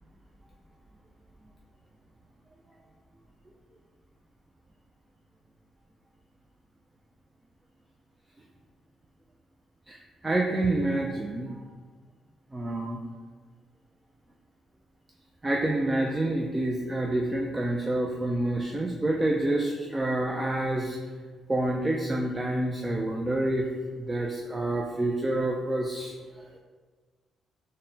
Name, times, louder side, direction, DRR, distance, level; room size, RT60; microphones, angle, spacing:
voice 1, 9.9-11.6 12.5-13.0 15.4-21.0 21.5-23.7 24.0-26.1, right 1 dB, 20° right, 0 dB, 0.3 m, -28 dB
4.0 x 2.1 x 3.9 m, 1.4 s
cardioid pair, 90°, 0 cm